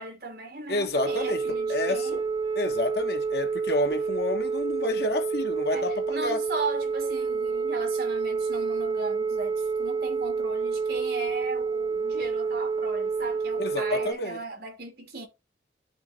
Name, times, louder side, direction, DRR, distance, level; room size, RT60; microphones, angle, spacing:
voice 1, 0.0-2.3 5.7-15.3, right 3 dB, 60° right, 2.5 m, -37 dB
voice 2, 0.7-2.2 2.6-6.4 13.6-14.4, left 2 dB, 65° left, 1.4 m, -29 dB
Telephone, 0.9-14.1, right 5 dB, 25° right, 1.0 m, -28 dB
12.0 x 4.1 x 3.8 m
head